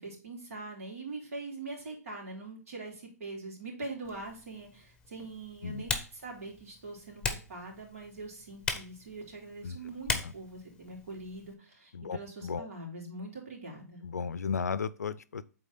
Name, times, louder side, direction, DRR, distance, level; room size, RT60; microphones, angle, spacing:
voice 1, 0.0-7.2 7.5-14.0, right 2 dB, 60° right, 3.6 m, -43 dB
Typing, 4.0-11.5, left 4 dB, 10° left, 1.1 m, -40 dB
voice 2, 14.0-15.4, left 6 dB, 70° left, 0.5 m, -34 dB
8.0 x 4.3 x 4.1 m
figure-of-eight pair, 120°, 9 cm